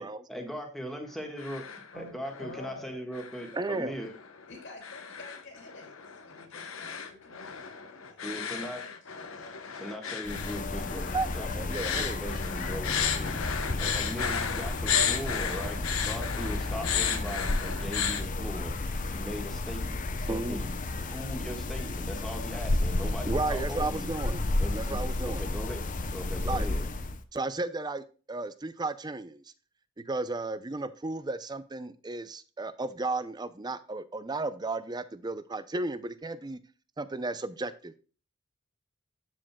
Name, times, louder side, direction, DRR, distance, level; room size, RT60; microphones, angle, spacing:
voice 1, 0.3-1.6 1.9-4.1 8.2-8.8 9.8-13.4 13.8-18.7 19.1-20.8 21.0-24.1 24.6-25.0 25.2-25.8 26.1-26.8, equal, ahead, 2 dB, 1.5 m, -39 dB
sound 1, 1.1-1.9 2.2-2.7 3.1-18.2, left 7 dB, 80° left, 0.9 m, -34 dB
voice 2, 2.4-2.9 4.5-9.5, left 2 dB, 60° left, 2 dB, 2.5 m, -49 dB
voice 3, 3.5-3.9 10.9-12.2 20.3-20.6 23.3-24.5 24.7-25.5 26.5-26.7 27.3-29.4 30.1-36.6 37.0-38.0, right 3 dB, 20° right, 13 dB, 0.5 m, -34 dB
sound 2, 10.2-27.2, left 2 dB, 40° left, 0.6 m, -32 dB
13.0 x 5.0 x 2.3 m, 0.37 s
head